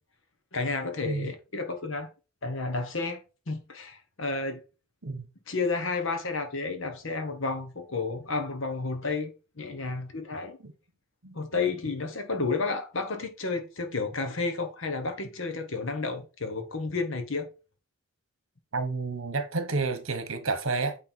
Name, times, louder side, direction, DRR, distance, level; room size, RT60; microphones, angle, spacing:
voice 1, 0.5-2.1 2.4-4.6 5.5-10.6 11.3-17.5, left 3 dB, 65° left, 1.1 m, -31 dB
voice 2, 18.7-21.0, right 3 dB, 65° right, 1.2 m, -30 dB
8.9 x 3.3 x 4.4 m
head